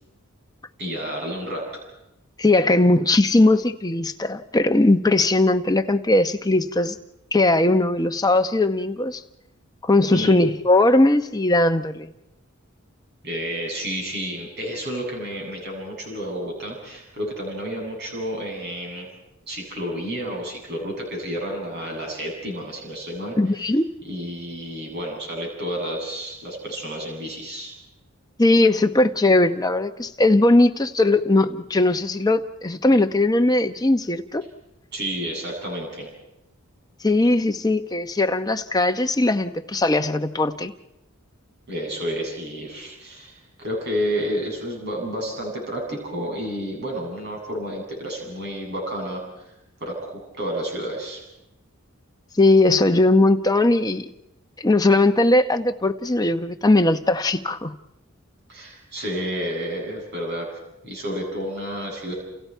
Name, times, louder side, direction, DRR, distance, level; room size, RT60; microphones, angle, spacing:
voice 1, 0.8-1.7 10.1-10.4 13.2-19.1 19.5-23.4 24.0-27.7 34.9-36.1 41.7-49.2 49.8-51.2 58.5-60.5 60.8-62.1, equal, 50° right, 0 dB, 7.9 m, -30 dB
voice 2, 2.4-7.0 7.3-9.2 9.8-12.1 23.4-23.8 28.4-34.4 37.0-40.7 52.4-54.1 54.6-57.7, left 2 dB, 20° left, 7 dB, 0.9 m, -19 dB
29.5 x 29.5 x 4.6 m, 0.90 s
head